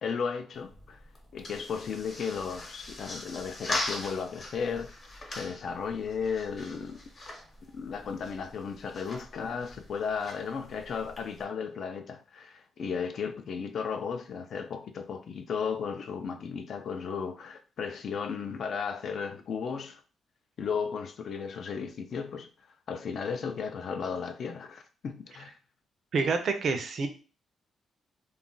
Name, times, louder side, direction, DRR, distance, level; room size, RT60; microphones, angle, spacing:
voice 1, 0.0-1.0 1.3-4.9 5.3-7.0 7.6-20.0 20.6-22.5 22.9-25.5, left 6 dB, 55° left, 0.4 m, -35 dB
sound 1, 0.5-11.4, left 2 dB, 35° left, 0.8 m, -41 dB
voice 2, 26.1-27.1, right 4 dB, 55° right, 0.5 m, -27 dB
2.3 x 2.1 x 3.7 m
cardioid pair, 125°, 0 cm